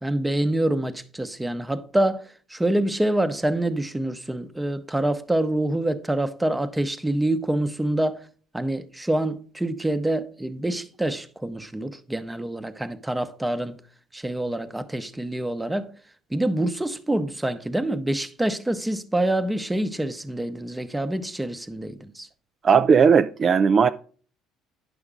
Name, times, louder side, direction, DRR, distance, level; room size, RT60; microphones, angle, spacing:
voice 1, 0.0-8.3 8.5-13.8 14.1-15.9 16.3-22.3, right 1 dB, 10° right, 0.8 m, -26 dB
voice 2, 22.6-23.9, right 6 dB, 40° right, 0.4 m, -17 dB
9.7 x 6.0 x 3.7 m
supercardioid pair, 95°, 0 cm